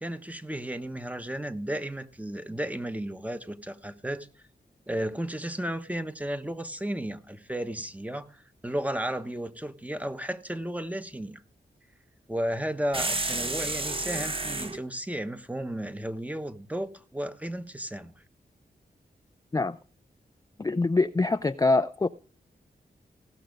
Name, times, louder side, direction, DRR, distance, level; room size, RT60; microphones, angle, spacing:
voice 1, 0.0-4.3 4.9-11.4 12.3-18.1, right 1 dB, 10° right, 1.1 m, -34 dB
sound 1, 12.9-14.8, right 2 dB, 30° right, 1.1 m, -30 dB
voice 2, 20.6-22.1, left 3 dB, 20° left, 0.4 m, -24 dB
17.0 x 6.0 x 5.2 m
cardioid pair, 45°, 18 cm